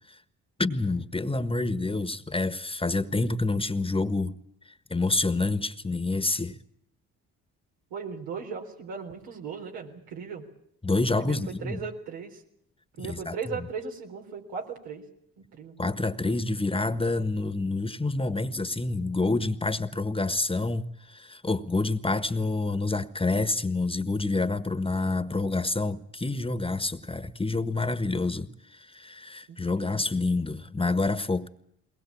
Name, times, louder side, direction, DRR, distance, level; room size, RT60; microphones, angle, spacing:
voice 1, 0.6-4.3 4.9-6.6 10.8-11.8 13.0-13.3 15.8-31.5, left 3 dB, 15° left, 1.4 m, -28 dB
voice 2, 7.9-10.4 11.1-12.4 13.0-15.0 15.4-15.7 29.5-30.0, right 5 dB, 90° right, 4.0 m, -37 dB
22.0 x 20.0 x 8.6 m
supercardioid pair, 60°, 35 cm